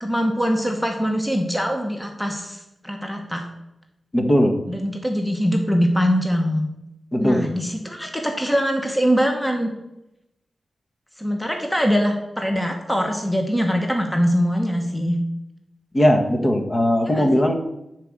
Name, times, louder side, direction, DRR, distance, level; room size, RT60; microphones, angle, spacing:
voice 1, 0.0-3.4 4.7-6.7 7.2-9.7 11.2-15.2 17.0-17.3, equal, 5° left, 3 dB, 1.2 m, -22 dB
voice 2, 4.1-4.6 7.1-7.5 15.9-17.5, equal, 25° left, 5 dB, 1.3 m, -18 dB
10.0 x 4.8 x 7.4 m, 0.89 s
wide cardioid pair, 110°, 0 cm